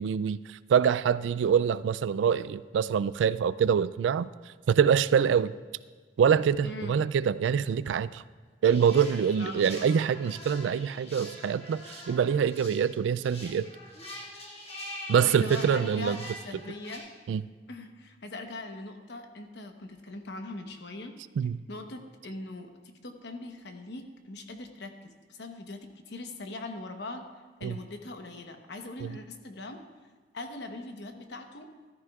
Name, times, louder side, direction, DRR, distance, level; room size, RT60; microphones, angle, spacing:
voice 1, 0.0-4.3 4.7-5.5 6.2-8.2 8.6-13.7 15.1-16.2 17.3-17.4 21.4-21.6 27.6-27.8 29.0-29.1, right 7 dB, 80° right, 17 dB, 0.3 m, -25 dB
voice 2, 6.6-7.0 9.4-9.6 15.2-17.1 17.7-21.2 21.7-22.7 23.0-25.8 26.1-27.3 27.6-29.8 30.3-31.7, left 2 dB, 65° left, 5 dB, 1.0 m, -41 dB
sound 1, 8.6-17.0, left 1 dB, 35° left, 1.9 m, -44 dB
14.5 x 13.0 x 2.4 m, 1.4 s
head